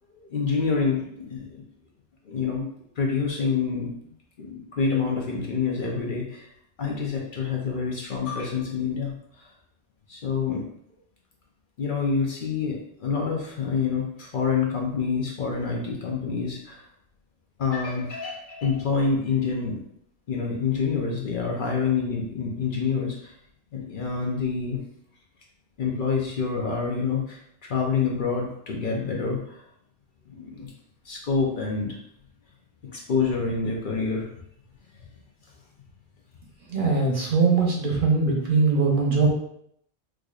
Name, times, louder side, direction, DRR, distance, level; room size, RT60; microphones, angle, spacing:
voice 1, 0.1-1.6 2.3-2.7 3.0-3.9 4.4-6.5 6.8-9.5 10.1-10.6 11.8-16.8 17.6-19.8 20.3-23.3 23.7-24.8 25.8-27.4 27.7-29.6 30.3-30.7 31.0-32.0 32.8-34.3, left 5 dB, 55° left, -1 dB, 0.7 m, -27 dB
voice 2, 36.7-39.3, right 4 dB, 55° right, -1 dB, 0.8 m, -21 dB
4.6 x 2.5 x 2.3 m, 0.71 s
omnidirectional pair, 1.2 m